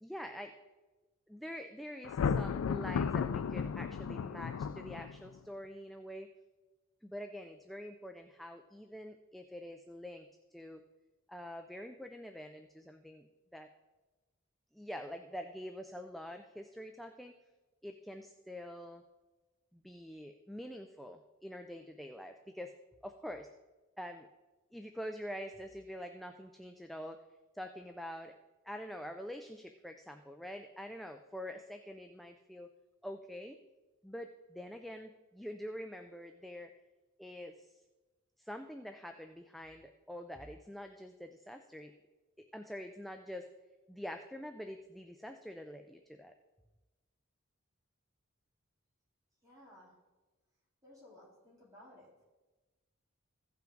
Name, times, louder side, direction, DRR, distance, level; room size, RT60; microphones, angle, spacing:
voice 1, 0.0-0.5 1.3-6.3 7.0-10.8 11.3-13.3 13.5-13.7 14.7-17.4 17.8-19.0 19.7-22.7 23.0-23.5 24.0-24.3 24.7-27.2 27.5-28.3 28.6-32.7 33.0-33.6 34.0-36.7 37.2-37.8 38.4-41.9 42.4-43.5 43.9-46.3, equal, ahead, 5 dB, 0.4 m, -46 dB
Thunder, 2.0-5.4, left 6 dB, 90° left, 0.4 m, -34 dB
voice 2, 49.4-49.9 50.8-52.1, left 1 dB, 15° right, -7 dB, 3.8 m, -57 dB
15.5 x 5.8 x 3.8 m, 1.2 s
head